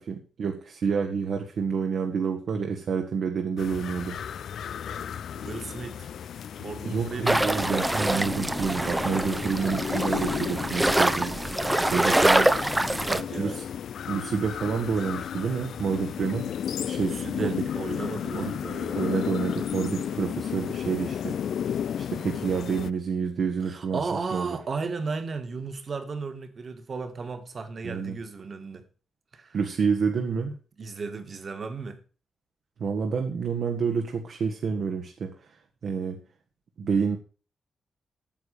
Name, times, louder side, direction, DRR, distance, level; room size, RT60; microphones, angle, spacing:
voice 1, 0.0-4.2 6.9-12.5 13.4-13.5 14.1-16.5 16.8-17.7 18.3-18.5 18.9-21.4 22.0-24.0 24.3-24.6 27.8-28.2 29.5-30.5 32.8-35.6 35.8-36.2 36.8-37.2, right 6 dB, 70° right, 1.5 m, -28 dB
sound 1, 3.6-22.9, left 9 dB, 75° left, 0.4 m, -34 dB
voice 2, 5.3-6.1 6.6-7.4 8.9-9.0 9.3-9.5 11.7-13.6 17.0-19.0 23.7-28.9 29.3-29.6 30.8-32.0, right 4 dB, 50° right, 1.9 m, -35 dB
sound 2, 7.3-13.2, right 1 dB, 10° right, 0.7 m, -25 dB
9.3 x 7.0 x 6.5 m
cardioid pair, 70°, 0 cm